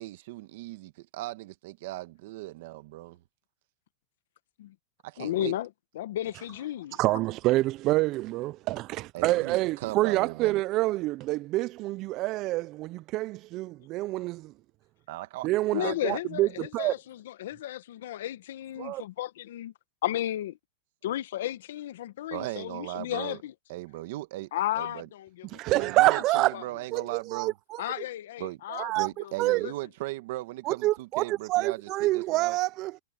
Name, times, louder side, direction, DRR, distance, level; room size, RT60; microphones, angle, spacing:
voice 1, 0.0-3.2 5.0-5.5 9.1-10.6 15.1-16.2 22.3-23.4 23.7-24.5 24.8-25.1 25.7-27.5 28.4-28.6 29.0-32.6, right 18 dB, 55° right, 1.5 m, -38 dB
voice 2, 5.2-5.7 5.9-7.0 15.7-19.7 20.0-20.6 21.0-23.5 24.5-25.6 26.5-26.6 27.8-29.7, left 13 dB, 70° left, 1.1 m, -34 dB
voice 3, 6.9-14.5 15.4-16.5 16.7-16.9 18.8-19.0 25.5-26.5 26.9-27.8 28.7-29.1 29.4-29.7 30.6-32.9, right 18 dB, 35° right, 0.3 m, -27 dB
supercardioid pair, 155°, 0 cm